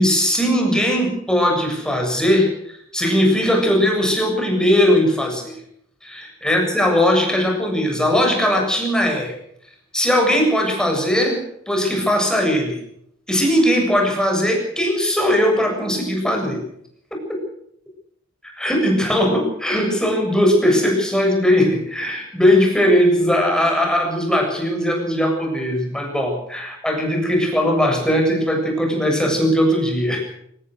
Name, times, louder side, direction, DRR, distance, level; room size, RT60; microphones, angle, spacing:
voice 1, 0.0-5.5 6.0-9.3 9.9-12.8 13.3-16.6 17.1-17.4 18.5-30.2, equal, 5° left, 1 dB, 7.4 m, -19 dB
24.0 x 18.5 x 6.5 m, 0.72 s
head